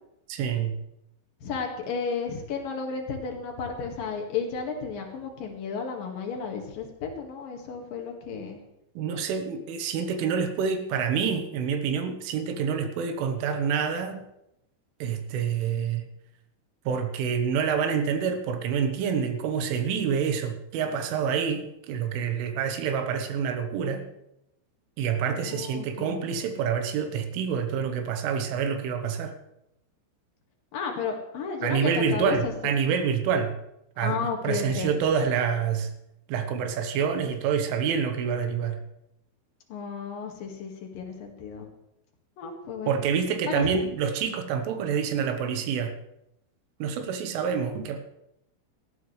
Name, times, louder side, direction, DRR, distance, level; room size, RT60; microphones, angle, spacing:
voice 1, 0.3-0.8 9.0-14.2 15.0-16.0 16.9-24.1 25.0-29.3 31.6-33.6 34.0-34.2 34.4-35.9 36.3-38.8 42.9-46.0 46.8-48.0, right 7 dB, 80° right, 7 dB, 3.6 m, -27 dB
voice 2, 1.4-8.6 25.5-26.2 30.7-32.5 34.0-35.0 39.7-41.7 42.4-43.0 43.5-43.7, left 5 dB, 55° left, 2 dB, 2.9 m, -33 dB
18.0 x 14.5 x 3.2 m, 0.85 s
omnidirectional pair, 5.7 m